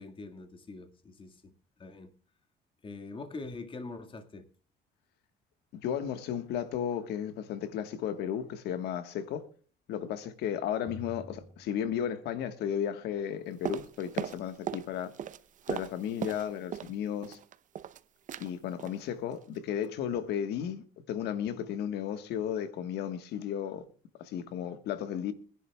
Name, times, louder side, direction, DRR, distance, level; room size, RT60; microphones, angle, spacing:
voice 1, 0.0-1.5 1.8-2.1 2.8-4.4, left 3 dB, 30° left, 1.9 m, -43 dB
voice 2, 5.7-9.5 9.9-15.1 15.7-17.4 18.4-23.8 24.2-25.3, left 9 dB, 80° left, 1.4 m, -34 dB
sound 1, 10.9-12.7, equal, 10° left, 1.0 m, -50 dB
sound 2, 13.6-14.9 15.1-16.9 17.2-18.0 18.3-18.5 18.8-19.0 19.3-19.6 19.8-19.9, right 9 dB, 50° right, 0.7 m, -38 dB
24.5 x 11.0 x 2.3 m
cardioid pair, 110°, 17 cm